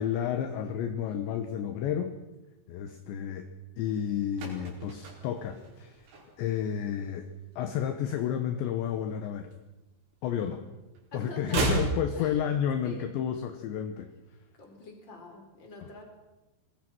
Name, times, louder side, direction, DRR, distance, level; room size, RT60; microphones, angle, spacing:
voice 1, 0.0-2.2 2.7-3.5 3.8-6.1 6.4-7.3 7.6-9.5 10.2-10.6 11.1-14.1, left 9 dB, 70° left, 8 dB, 3.2 m, -31 dB
sound 1, 4.0-6.7 6.9-7.2 7.5-9.0 9.3-10.6 10.9-13.0 13.2-13.3, right 4 dB, 80° right, 7.6 m, -35 dB
voice 2, 10.3-10.7 11.1-12.4 12.8-13.1 14.5-16.0, left 2 dB, 25° left, 2 dB, 4.8 m, -46 dB
25.5 x 20.0 x 6.2 m, 1.1 s
omnidirectional pair, 5.9 m